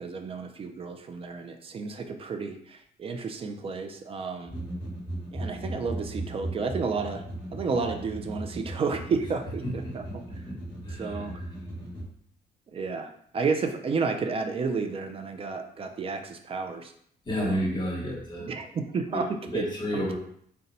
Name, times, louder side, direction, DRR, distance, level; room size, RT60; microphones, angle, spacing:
voice 1, 0.0-4.6 5.3-7.2 7.5-10.2 10.9-11.3 12.7-16.9 17.4-17.6 18.4-19.7 19.9-20.2, right 4 dB, 30° right, 6 dB, 0.4 m, -31 dB
sound 1, 4.5-12.0, right 1 dB, 10° left, 1.3 m, -37 dB
voice 2, 10.8-11.2 17.3-18.5 19.1-19.2 19.5-20.2, equal, 25° left, -3 dB, 1.1 m, -31 dB
3.9 x 2.2 x 4.0 m, 0.66 s
cardioid pair, 150°, 18 cm